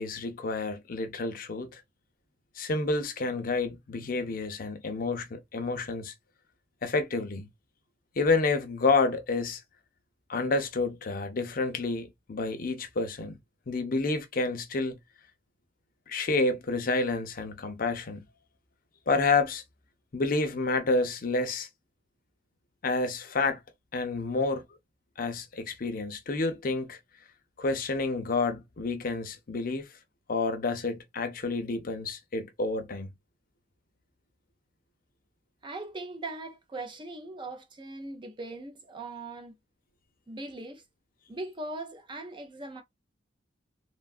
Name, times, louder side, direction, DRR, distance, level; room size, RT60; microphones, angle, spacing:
voice 1, 0.0-1.8 2.6-6.1 6.8-7.5 8.2-9.6 10.3-13.4 13.7-15.0 16.1-18.2 19.1-19.6 20.1-21.7 22.8-23.6 23.9-24.6 25.2-27.0 27.6-29.8 30.3-33.1, left 3 dB, 50° left, 0.6 m, -29 dB
voice 2, 35.6-39.5 40.3-40.8 41.3-42.8, right 2 dB, 25° right, 0.5 m, -40 dB
3.2 x 2.3 x 2.3 m
head